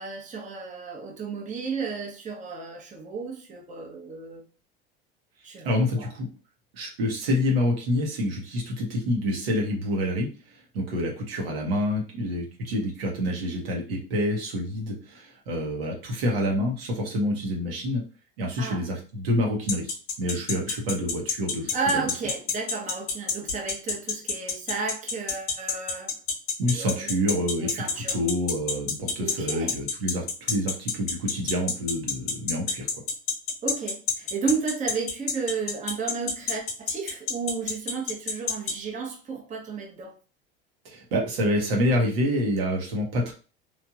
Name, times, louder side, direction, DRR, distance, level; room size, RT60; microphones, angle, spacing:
voice 1, 0.0-4.5 5.4-5.7 5.9-6.1 18.6-18.9 21.7-26.1 26.7-27.1 27.6-28.2 29.2-29.8 33.6-40.2, right 5 dB, 25° right, 0.8 m, -32 dB
voice 2, 5.6-6.3 6.7-18.0 18.4-22.0 26.6-27.8 28.1-32.9 40.8-43.3, left 1 dB, 75° right, 1.0 m, -27 dB
sound 1, 19.7-38.7, left 6 dB, 70° left, 0.9 m, -27 dB
3.1 x 2.5 x 2.4 m
hypercardioid pair, 75°, 30 cm